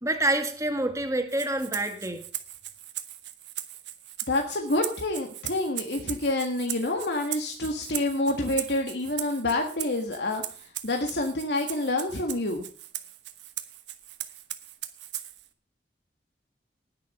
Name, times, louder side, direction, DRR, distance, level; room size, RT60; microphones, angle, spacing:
voice 1, 0.0-2.2, right 1 dB, 20° right, 6 dB, 1.8 m, -27 dB
Rattle (instrument), 1.3-15.5, right 12 dB, 90° right, 1.2 m, -39 dB
voice 2, 4.3-10.4 10.8-12.7, left 2 dB, 75° left, 2 dB, 1.7 m, -28 dB
19.0 x 6.8 x 5.5 m, 0.42 s
head